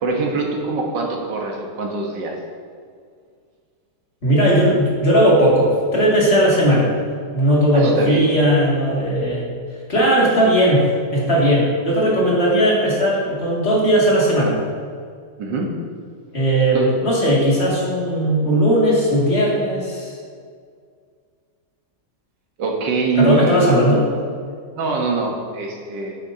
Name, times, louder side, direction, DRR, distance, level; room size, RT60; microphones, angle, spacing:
voice 1, 0.0-2.4 7.7-8.3 15.4-15.7 16.7-16.9 22.6-23.7 24.8-26.2, right 3 dB, 85° right, 0 dB, 1.8 m, -23 dB
voice 2, 4.2-6.9 7.3-9.4 9.9-10.8 11.1-14.6 16.3-20.1 23.2-24.0, equal, 35° left, -6 dB, 2.5 m, -17 dB
9.8 x 8.8 x 2.8 m, 2.1 s
omnidirectional pair, 1.9 m